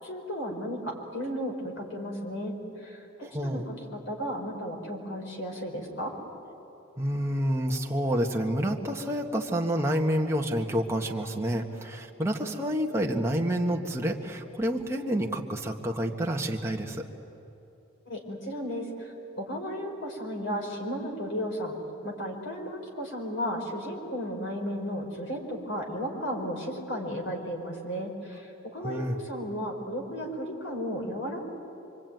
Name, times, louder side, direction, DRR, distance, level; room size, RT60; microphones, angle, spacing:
voice 1, 0.0-3.1 3.4-6.1 18.1-21.8 22.0-31.4, equal, 55° left, 1 dB, 4.6 m, -34 dB
voice 2, 3.2-3.7 7.0-17.1 28.8-29.1, equal, 10° right, 0 dB, 1.6 m, -28 dB
26.0 x 24.0 x 9.3 m, 2.9 s
head